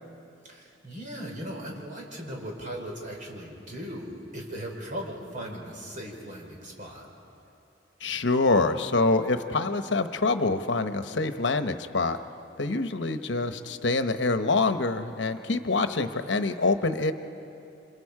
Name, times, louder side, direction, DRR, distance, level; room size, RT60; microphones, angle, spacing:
voice 1, 0.4-7.1, equal, 45° right, 0 dB, 4.3 m, -38 dB
voice 2, 8.0-12.2 12.6-17.1, left 3 dB, 80° left, 9 dB, 1.0 m, -25 dB
29.0 x 27.0 x 4.9 m, 2.7 s
head